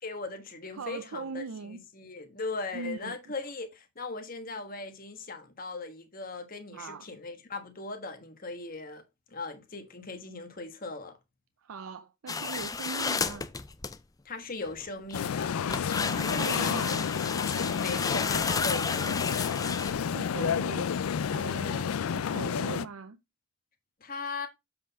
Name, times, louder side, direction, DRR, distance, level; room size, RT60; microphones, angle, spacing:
voice 1, 0.0-11.2 14.2-15.5 17.8-19.2 24.0-24.5, left 3 dB, 40° left, 1.3 m, -39 dB
voice 2, 0.8-1.8 2.7-3.2 6.7-7.1 11.6-13.5 16.1-17.1 20.0-21.0 21.3-23.2, right 4 dB, 85° right, 0.5 m, -40 dB
sound 1, 12.3-14.0 14.7-15.1 15.7-19.9, left 5 dB, 15° left, 0.4 m, -32 dB
sound 2, 15.1-22.8, left 7 dB, 90° left, 0.4 m, -30 dB
sound 3, 17.6-20.8, left 1 dB, 70° left, 2.3 m, -47 dB
7.5 x 4.4 x 4.0 m
head